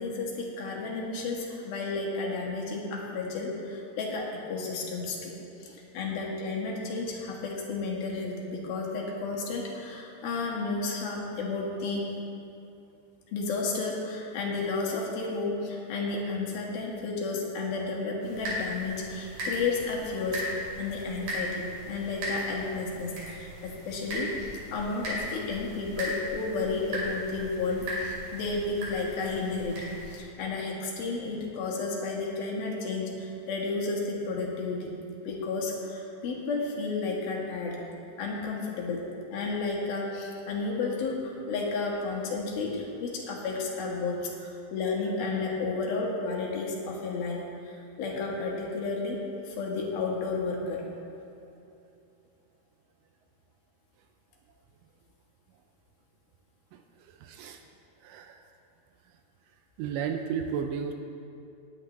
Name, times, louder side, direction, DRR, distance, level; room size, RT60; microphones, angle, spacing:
voice 1, 0.0-5.3 5.6-12.1 13.3-20.4 20.8-34.9 35.3-37.8 38.2-50.9, left 3 dB, 80° left, -2 dB, 3.4 m, -32 dB
sound 1, 18.2-30.2, equal, 60° right, 4.1 m, -37 dB
voice 2, 56.7-57.6 58.0-58.4 59.8-60.9, right 7 dB, 80° right, 6 dB, 2.0 m, -34 dB
18.0 x 10.0 x 3.0 m, 2.7 s
omnidirectional pair, 4.2 m